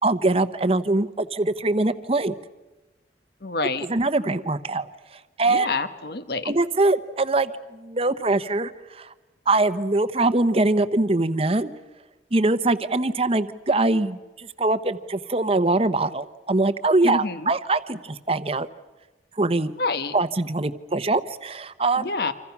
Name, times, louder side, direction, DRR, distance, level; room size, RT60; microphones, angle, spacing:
voice 1, 0.0-2.3 3.9-4.9 5.1-5.7 6.4-9.1 9.5-11.7 12.3-18.7 19.4-19.7 20.1-22.1, right 2 dB, 35° right, 13 dB, 0.9 m, -23 dB
voice 2, 3.4-3.9 5.5-6.5 17.0-17.5 19.8-20.1 22.0-22.3, left 3 dB, 60° left, 11 dB, 1.3 m, -27 dB
28.5 x 26.5 x 6.0 m, 1.1 s
head